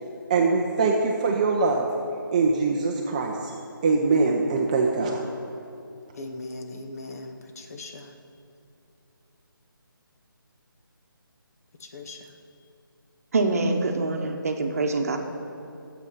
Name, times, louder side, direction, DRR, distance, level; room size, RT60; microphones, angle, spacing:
voice 1, 0.3-1.9 2.3-3.5 3.8-5.2, right 4 dB, 20° right, 0.6 m, -23 dB
voice 2, 6.1-8.1 11.8-12.3, left 2 dB, 45° left, 1.1 m, -39 dB
voice 3, 13.3-15.2, right 3 dB, 45° right, 1.0 m, -25 dB
13.5 x 7.9 x 5.7 m
figure-of-eight pair, 160°, 12 cm